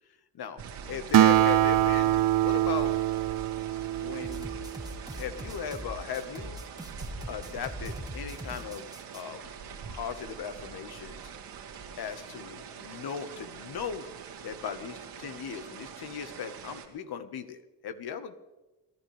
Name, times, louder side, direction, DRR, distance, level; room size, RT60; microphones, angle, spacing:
sound 1, 0.6-16.9, right 6 dB, 70° right, 2.2 m, -44 dB
voice 1, 0.9-2.9 4.0-4.5 5.1-6.6 7.3-8.9 9.1-9.5 9.9-11.3 12.0-14.1 14.4-18.4, left 7 dB, 60° left, 10 dB, 1.4 m, -37 dB
Acoustic guitar, 1.1-4.9, right 14 dB, 50° right, 0.5 m, -24 dB
sound 2, 4.2-9.2, equal, 10° right, 1.7 m, -41 dB
28.0 x 11.5 x 3.3 m, 1.1 s
hypercardioid pair, 45°, 43 cm